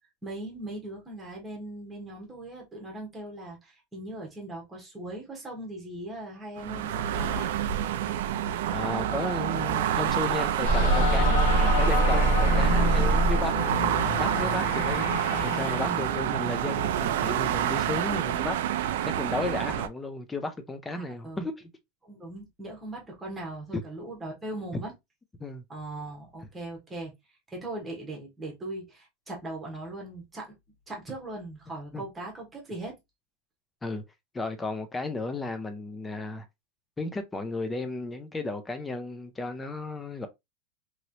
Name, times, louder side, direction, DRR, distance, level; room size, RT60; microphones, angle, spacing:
voice 1, 0.2-7.6 12.4-13.0 20.9-21.4 22.0-24.9 25.7-27.1 27.5-30.6 30.9-33.0, right 2 dB, 10° right, 1.0 m, -39 dB
sound 1, 6.6-19.9, right 10 dB, 70° right, 0.4 m, -28 dB
voice 2, 8.7-11.4 11.8-21.7 23.7-23.8 25.4-25.6 31.9-32.0 33.8-34.0 34.3-36.5 37.0-40.3, left 2 dB, 10° left, 0.4 m, -34 dB
sound 2, 10.6-16.1, right 1 dB, 60° left, 0.8 m, -25 dB
3.1 x 2.9 x 2.6 m
supercardioid pair, 170°, 0 cm